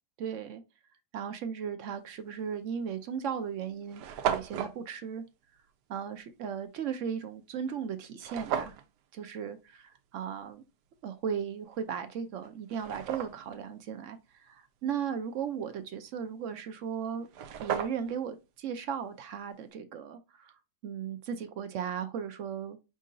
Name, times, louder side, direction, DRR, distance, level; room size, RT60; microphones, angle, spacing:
voice 1, 0.2-0.6 1.1-5.2 5.9-8.8 9.1-10.6 11.0-14.2 14.8-17.3 17.6-20.5 20.8-22.8, right 7 dB, 65° right, 0.8 m, -36 dB
sound 1, 2.4-2.6 3.3-3.4 3.6-3.7 3.9-4.8 8.2-8.9 11.8-11.9 12.4-13.6 16.9-17.0 17.2-18.2, right 8 dB, 85° right, 1.2 m, -34 dB
5.1 x 3.7 x 2.5 m
omnidirectional pair, 1.7 m